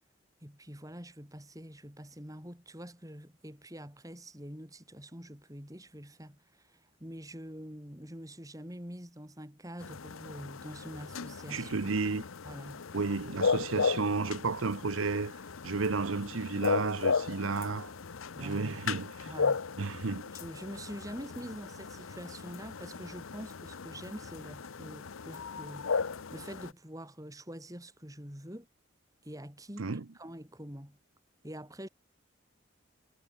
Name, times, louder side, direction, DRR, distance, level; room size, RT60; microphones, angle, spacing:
voice 1, 0.4-11.7 12.4-12.8 18.3-18.8 19.3-19.6 20.3-28.7 29.2-29.9 30.1-31.0 31.4-31.9, equal, 15° right, 6.0 m, -45 dB
sound 1, 9.8-26.7, left 5 dB, 85° left, 0.8 m, -36 dB
voice 2, 11.5-12.2 12.9-15.3 15.6-17.9 18.4-19.3 19.8-20.3 29.8-30.0, right 4 dB, 85° right, 0.8 m, -32 dB
head